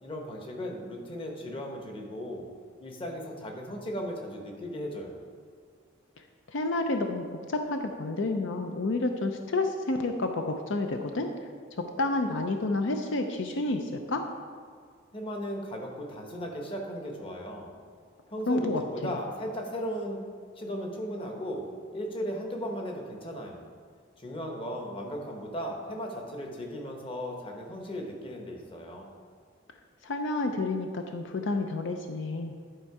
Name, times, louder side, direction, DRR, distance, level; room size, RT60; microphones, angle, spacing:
voice 1, 0.0-2.5 2.8-5.2 15.1-17.7 18.3-20.2 20.6-21.7 21.9-23.6 24.2-29.1, equal, 25° left, 1 dB, 1.0 m, -36 dB
voice 2, 6.5-11.3 12.0-14.3 18.5-19.1 30.0-32.5, left 2 dB, 70° left, 5 dB, 0.5 m, -30 dB
11.0 x 4.4 x 4.8 m, 2.1 s
head